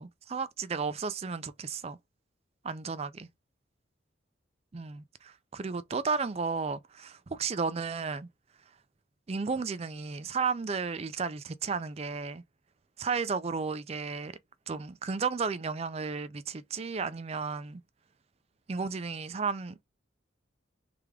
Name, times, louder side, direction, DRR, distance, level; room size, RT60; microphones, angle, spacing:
voice 1, 0.0-2.0 2.6-3.3 4.7-8.3 9.3-12.4 13.0-14.3 14.7-17.8 18.7-19.8, right 5 dB, 30° right, 0.4 m, -33 dB
3.4 x 3.3 x 3.5 m
head